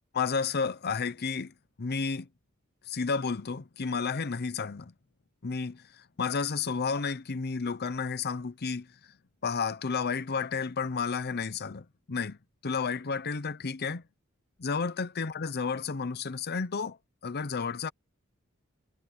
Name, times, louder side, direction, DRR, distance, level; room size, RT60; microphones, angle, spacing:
voice 1, 0.1-1.5 1.8-2.3 2.9-4.9 5.4-9.1 9.4-12.4 12.6-14.0 14.6-17.0 17.2-17.9, left 5 dB, 50° left, 0.7 m, -31 dB
head